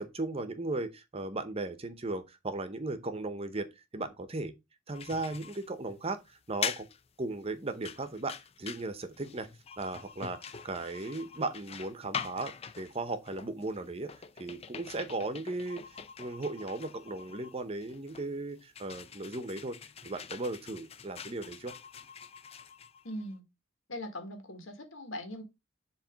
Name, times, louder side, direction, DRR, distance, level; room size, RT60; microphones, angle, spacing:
voice 1, 0.0-3.7 3.9-4.5 4.9-6.9 7.2-9.5 9.8-14.1 14.4-15.8 16.2-19.8 20.0-21.7, right 2 dB, 30° right, 0.8 m, -36 dB
sound 1, 4.9-23.4, left 7 dB, 30° left, 0.5 m, -44 dB
voice 2, 23.0-23.5 23.9-25.4, left 1 dB, 90° left, 1.7 m, -40 dB
7.4 x 3.1 x 5.0 m
head